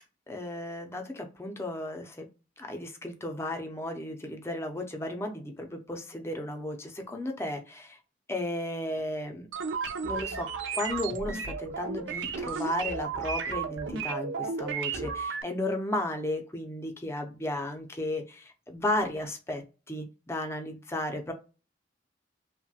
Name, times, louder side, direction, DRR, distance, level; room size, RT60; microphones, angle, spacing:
voice 1, 0.3-2.3 2.6-8.0 8.3-9.5 10.0-10.5 10.7-19.6 19.9-21.3, left 1 dB, 15° left, 4 dB, 0.5 m, -34 dB
sound 1, 9.5-15.4, right 5 dB, 80° right, 0.5 m, -33 dB
3.1 x 2.1 x 2.7 m, 0.32 s
head